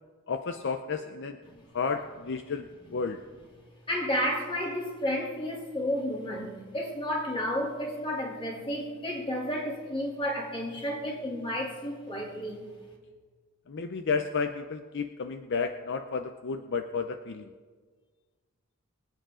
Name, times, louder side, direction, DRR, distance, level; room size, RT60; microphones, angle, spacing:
voice 1, 0.3-1.4 1.7-3.2 13.7-17.5, left 5 dB, 55° left, 7 dB, 0.6 m, -32 dB
voice 2, 3.9-12.7, equal, 25° left, -2 dB, 2.9 m, -32 dB
24.0 x 9.0 x 3.8 m, 1.5 s
head